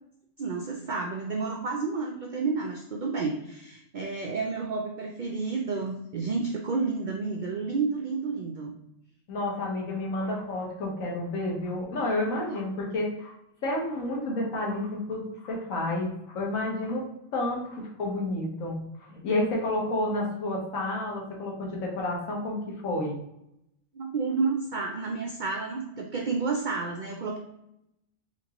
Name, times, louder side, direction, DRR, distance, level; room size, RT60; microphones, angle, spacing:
voice 1, 0.4-8.7 23.9-27.4, right 4 dB, 90° right, 1 dB, 0.4 m, -30 dB
voice 2, 9.3-13.3 13.6-17.0 17.3-18.8 19.1-23.2, left 1 dB, 80° left, -2 dB, 1.4 m, -30 dB
4.4 x 2.6 x 2.9 m, 0.81 s
omnidirectional pair, 1.4 m